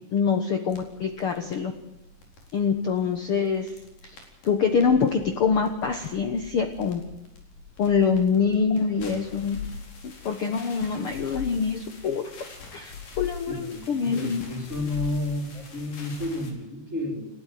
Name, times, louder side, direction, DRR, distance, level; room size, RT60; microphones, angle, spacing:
voice 1, 0.1-1.7 2.5-4.2 4.4-7.0 7.8-9.6 10.2-12.4 12.7-14.5, left 6 dB, 55° left, 7 dB, 1.8 m, -25 dB
sound 1, 0.7-16.5, left 5 dB, 85° left, 5.8 m, -43 dB
voice 2, 13.5-17.3, left 1 dB, 20° right, 3 dB, 4.0 m, -31 dB
29.0 x 13.5 x 9.4 m, 0.98 s
omnidirectional pair, 3.8 m